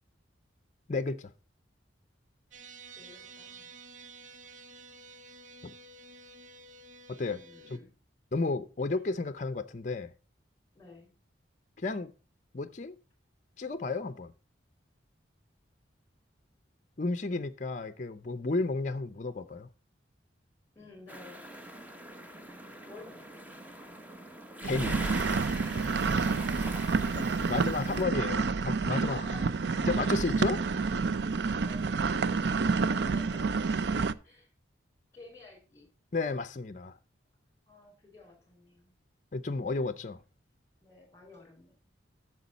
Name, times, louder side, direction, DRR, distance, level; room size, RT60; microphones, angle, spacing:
voice 1, 0.9-1.3 5.6-5.7 7.1-7.4 7.7-7.8 8.3-10.1 11.8-12.1 12.5-12.9 13.6-14.3 17.0-19.7 24.6-25.0 27.1-29.2 29.8-30.6 36.1-37.0 39.3-40.2, left 3 dB, 40° left, 0.5 m, -32 dB
sound 1, 2.5-7.8, right 3 dB, 85° right, 1.3 m, -51 dB
voice 2, 2.9-3.7 7.3-7.9 10.7-11.1 20.7-21.4 22.3-22.5 22.8-23.5 27.4-27.9 28.9-29.9 30.3-30.5 31.6-32.2 32.8-33.7 34.2-34.5 35.1-35.9 37.7-38.9 40.8-41.7, left 2 dB, 15° left, 4.4 m, -53 dB
sound 2, 21.1-28.0, equal, 10° right, 1.0 m, -43 dB
sound 3, 24.6-34.1, right 4 dB, 60° right, 0.4 m, -29 dB
9.6 x 6.9 x 4.0 m
head